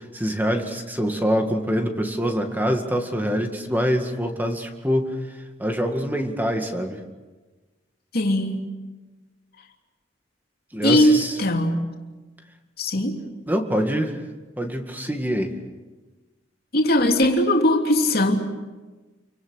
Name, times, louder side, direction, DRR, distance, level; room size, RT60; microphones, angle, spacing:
voice 1, 0.0-5.2 5.6-7.0 10.7-11.4 13.5-14.2 14.6-15.6, equal, 10° right, 4 dB, 2.1 m, -25 dB
voice 2, 8.1-8.6 10.8-11.9 12.8-13.2 16.7-18.4, left 1 dB, 55° left, 2 dB, 3.0 m, -20 dB
29.0 x 24.0 x 6.6 m, 1.2 s
head